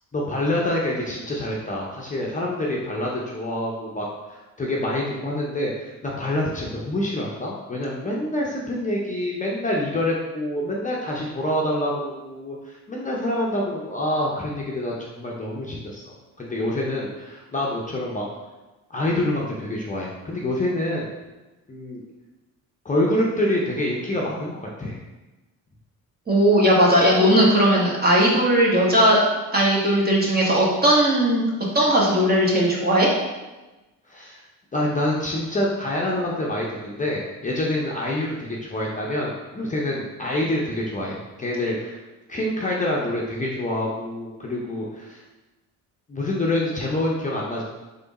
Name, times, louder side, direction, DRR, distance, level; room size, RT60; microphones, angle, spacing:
voice 1, 0.1-18.3 18.9-21.1 21.7-22.0 22.8-25.0 34.1-34.4 34.7-42.0 42.3-45.2 46.1-47.6, left 1 dB, 20° left, -3 dB, 0.8 m, -26 dB
voice 2, 26.3-29.2 29.5-31.4 31.7-33.1, equal, 25° right, -3 dB, 1.5 m, -18 dB
3.8 x 3.4 x 4.1 m, 1.1 s
supercardioid pair, 80°, 37 cm